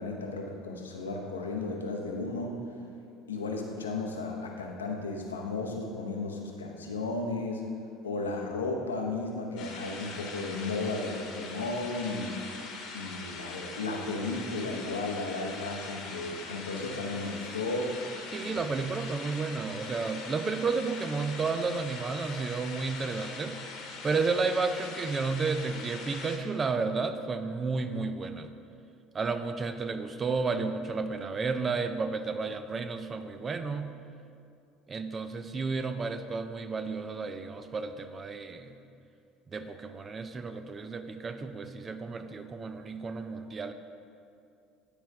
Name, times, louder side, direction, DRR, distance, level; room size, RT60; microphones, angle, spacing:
voice 1, 0.0-2.6 3.3-7.6 8.0-12.3 12.9-18.0 18.4-18.6, left 3 dB, 85° left, 1 dB, 0.8 m, -34 dB
sound 1, 9.6-26.4, left 4 dB, 55° left, 1.1 m, -42 dB
voice 2, 18.3-28.5 29.1-34.0 34.9-38.8 39.5-43.7, right 4 dB, 30° right, 9 dB, 0.5 m, -32 dB
10.0 x 4.4 x 4.8 m, 2.5 s
figure-of-eight pair, 65°, 0 cm